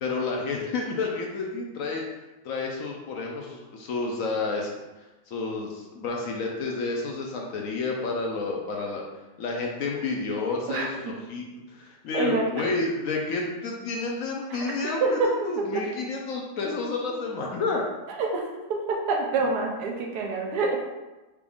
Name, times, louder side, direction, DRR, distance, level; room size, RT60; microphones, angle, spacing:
voice 1, 0.0-2.0 2.4-4.7 5.3-9.1 9.4-17.8, left 3 dB, 65° left, 0 dB, 0.9 m, -30 dB
voice 2, 10.7-11.1 12.1-12.5 14.5-14.6 15.0-15.8 18.2-20.8, right 3 dB, 80° right, 1 dB, 1.2 m, -27 dB
4.7 x 2.5 x 3.5 m, 1.1 s
omnidirectional pair, 1.7 m